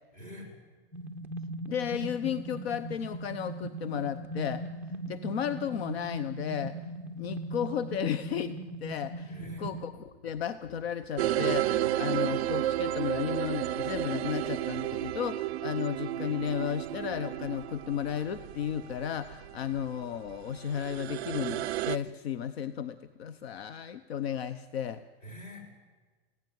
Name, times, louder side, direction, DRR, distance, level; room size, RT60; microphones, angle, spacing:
voice 1, 0.1-0.5 9.3-9.7 25.2-25.9, left 1 dB, 25° left, 2 dB, 5.6 m, -46 dB
sound 1, 0.9-9.8, right 1 dB, 5° right, 0.9 m, -39 dB
voice 2, 1.7-4.6 5.1-6.7 7.2-8.5 8.8-25.0, left 9 dB, 65° left, 14 dB, 0.9 m, -34 dB
sound 2, 9.4-15.3, left 4 dB, 80° left, 4.3 m, -48 dB
sound 3, 11.2-22.0, right 14 dB, 65° right, 0.6 m, -32 dB
23.0 x 16.5 x 9.4 m, 1.4 s
supercardioid pair, 175°, 34 cm